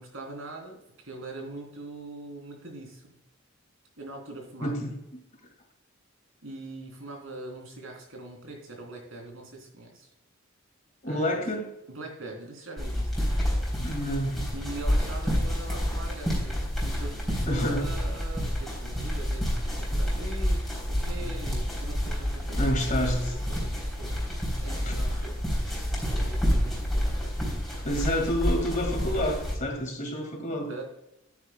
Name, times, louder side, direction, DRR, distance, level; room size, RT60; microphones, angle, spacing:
voice 1, 0.0-3.2 4.0-4.7 6.4-10.1 11.0-11.4 11.9-13.1 14.5-24.2 24.6-25.6 26.2-27.9 30.4-30.8, right 2 dB, 80° right, 1 dB, 3.2 m, -42 dB
voice 2, 4.6-5.2 11.0-11.7 13.8-14.4 17.5-17.9 21.2-21.3 22.6-23.4 24.8-25.0 27.9-30.7, equal, 40° left, 3 dB, 2.0 m, -29 dB
sound 1, 12.8-29.5, equal, ahead, 3.3 m, -29 dB
10.0 x 9.7 x 2.2 m, 0.87 s
head